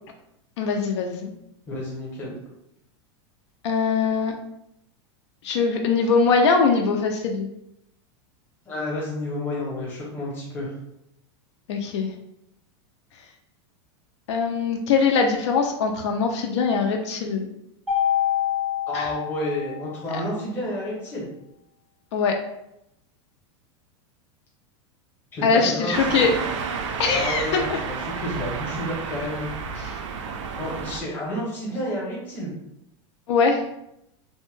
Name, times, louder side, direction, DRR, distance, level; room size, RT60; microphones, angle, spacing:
voice 1, 0.6-1.3 3.6-4.4 5.4-7.5 11.7-12.1 14.3-17.5 18.9-19.1 20.1-20.2 22.1-22.4 25.4-26.6 27.0-27.8 29.8-30.0 33.3-33.6, left 5 dB, 70° left, 3 dB, 0.4 m, -22 dB
voice 2, 1.7-2.3 8.6-10.7 18.9-21.3 25.3-26.4 27.1-29.5 30.5-32.5, left 1 dB, 15° left, -5 dB, 0.7 m, -30 dB
Mallet percussion, 17.9-20.1, left 10 dB, 5° right, 0.3 m, -26 dB
sound 1, 25.9-31.0, right 5 dB, 80° right, 0.4 m, -31 dB
2.7 x 2.1 x 3.0 m, 0.80 s
supercardioid pair, 175°, 16 cm